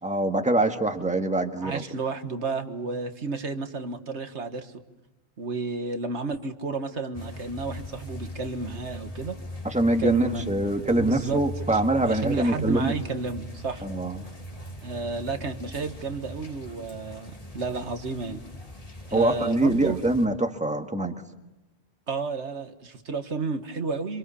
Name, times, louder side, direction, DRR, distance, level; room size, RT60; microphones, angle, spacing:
voice 1, 0.0-1.8 9.6-12.9 13.8-14.2 19.1-21.1, right 2 dB, 5° right, 5 dB, 1.7 m, -24 dB
voice 2, 1.6-4.7 5.4-9.4 10.0-10.5 11.0-11.4 11.7-13.8 14.8-18.4 19.1-20.0 22.1-24.2, right 4 dB, 85° right, 7 dB, 1.9 m, -32 dB
sound 1, 7.1-20.3, equal, 35° left, 2.8 m, -39 dB
27.0 x 26.5 x 7.0 m, 1.0 s
omnidirectional pair, 1.1 m